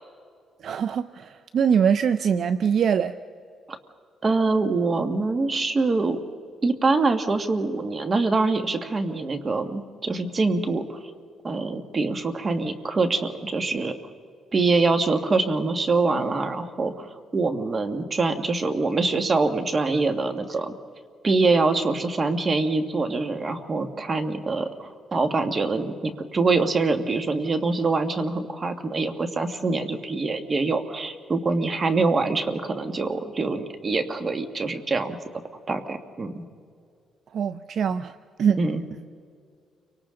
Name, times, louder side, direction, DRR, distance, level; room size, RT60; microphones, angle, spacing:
voice 1, 0.6-3.1 37.3-38.1 38.4-38.6, right 7 dB, 60° right, 12 dB, 0.5 m, -23 dB
voice 2, 4.2-6.2 6.6-11.0 11.4-13.9 14.5-17.1 17.3-20.7 21.2-35.2 35.7-36.4 38.6-38.8, right 3 dB, 35° right, 7 dB, 1.7 m, -24 dB
30.0 x 24.5 x 3.9 m, 2.2 s
cardioid pair, 90°, 0 cm